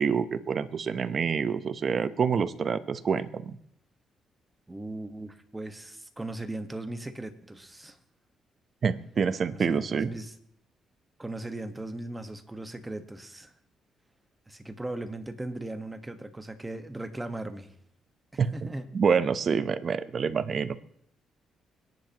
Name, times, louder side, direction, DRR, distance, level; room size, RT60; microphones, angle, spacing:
voice 1, 0.0-3.6 8.8-10.1 18.4-18.5 18.9-20.8, right 6 dB, 50° right, 13 dB, 0.8 m, -27 dB
voice 2, 4.7-8.0 9.5-10.3 11.2-13.5 14.5-17.7 18.3-18.9, right 2 dB, 15° right, 8 dB, 1.3 m, -38 dB
25.0 x 10.5 x 3.0 m, 0.68 s
cardioid pair, 90°, 0 cm